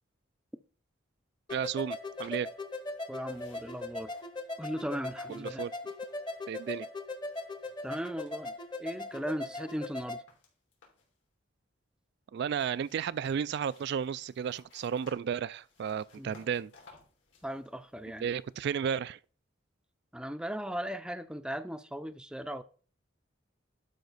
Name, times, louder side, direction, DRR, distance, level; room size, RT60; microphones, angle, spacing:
sound 1, 1.5-10.2, left 2 dB, 25° left, 0.9 m, -39 dB
voice 1, 1.5-2.5 5.3-5.7 6.5-6.9 12.3-16.7 18.2-19.2, right 7 dB, 60° right, 0.3 m, -33 dB
sound 2, 2.0-3.0 3.3-7.0 7.3-8.7 9.0-11.2 12.3-18.6, left 3 dB, 75° left, 3.4 m, -61 dB
voice 2, 3.1-4.1 4.6-5.7 7.8-8.5 8.8-10.2 16.2-16.3 17.4-18.3 20.1-22.6, equal, 5° right, 0.5 m, -37 dB
11.5 x 5.2 x 4.0 m
head